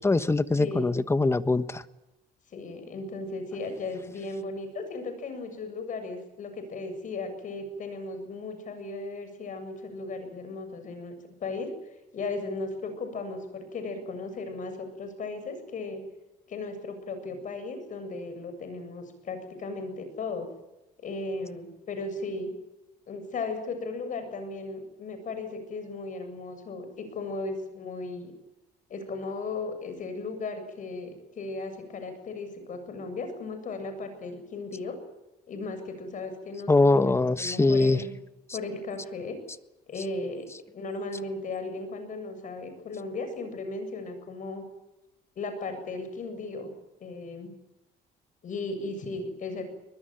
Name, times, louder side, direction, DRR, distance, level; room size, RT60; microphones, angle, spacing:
voice 1, 0.0-1.8 36.7-38.0, left 3 dB, 15° left, 13 dB, 1.3 m, -22 dB
voice 2, 2.5-11.1 11.4-11.7 12.1-16.0 16.5-20.5 21.0-22.5 23.1-28.3 28.9-35.0 35.5-38.1 38.5-39.4 39.9-40.5 40.7-44.6 45.4-46.7 47.0-47.5 48.4-49.7, left 3 dB, 50° left, 8 dB, 7.7 m, -36 dB
23.0 x 20.5 x 9.2 m, 0.92 s
cardioid pair, 110°, 17 cm